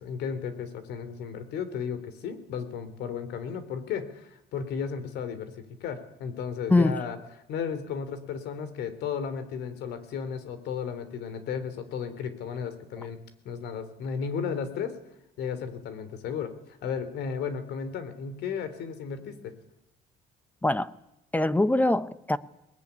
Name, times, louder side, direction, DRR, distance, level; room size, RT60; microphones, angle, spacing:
voice 1, 0.0-7.2 7.5-13.2 13.4-15.0 15.4-19.5, left 6 dB, 80° left, 3.4 m, -34 dB
voice 2, 6.7-7.0 20.6-20.9 21.3-22.4, left 2 dB, 10° left, 0.9 m, -23 dB
22.5 x 19.5 x 9.8 m
cardioid pair, 110°, 17 cm